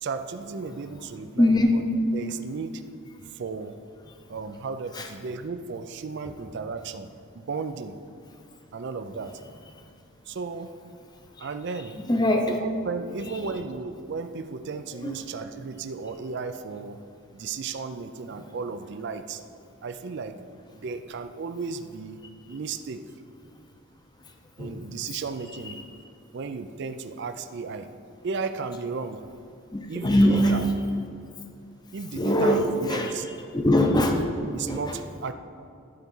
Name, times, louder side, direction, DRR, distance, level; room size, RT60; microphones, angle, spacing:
voice 1, 0.0-1.8 2.1-2.8 3.3-3.8 4.3-8.0 8.7-9.4 10.3-10.7 11.4-11.9 12.5-17.0 17.3-19.4 19.8-20.4 20.7-22.2 22.5-23.1 24.6-25.8 26.3-27.9 28.2-29.3 29.9-30.6 31.9-33.3 34.5-35.3, right 4 dB, 55° right, 9 dB, 0.4 m, -34 dB
voice 2, 1.4-1.8 3.2-3.3 4.1-4.2 4.9-5.1 6.2-6.3 11.3-11.5 12.1-12.6 13.3-13.4 15.0-15.1 18.4-18.5 24.2-24.8 25.6-25.7 29.7-30.7 32.1-33.1 33.5-35.0, left 1 dB, 20° left, 4 dB, 0.7 m, -23 dB
11.5 x 4.6 x 5.4 m, 2.5 s
head